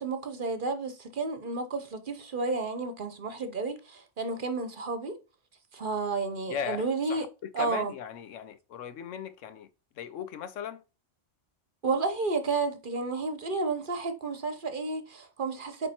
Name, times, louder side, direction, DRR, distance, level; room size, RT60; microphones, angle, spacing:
voice 1, 0.0-5.2 5.7-7.2 7.5-7.9 11.8-15.9, right 3 dB, 50° right, 0.9 m, -31 dB
voice 2, 6.5-7.3 7.6-9.7 10.0-10.8, left 7 dB, 90° left, 1.1 m, -37 dB
8.6 x 3.4 x 4.3 m
omnidirectional pair, 1.2 m